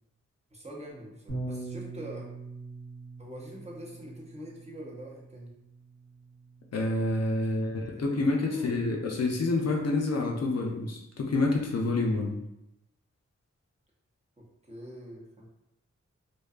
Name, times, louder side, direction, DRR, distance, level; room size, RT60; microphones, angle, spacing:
voice 1, 0.5-2.3 3.2-5.5 7.5-8.2 8.5-9.1 14.4-15.5, equal, 20° right, -3 dB, 0.7 m, -44 dB
Bass guitar, 1.3-7.5, right 3 dB, 65° right, 1.2 m, -43 dB
voice 2, 6.7-12.4, left 2 dB, 60° left, 0 dB, 0.5 m, -28 dB
2.6 x 2.2 x 2.4 m, 0.86 s
cardioid pair, 50°, 30 cm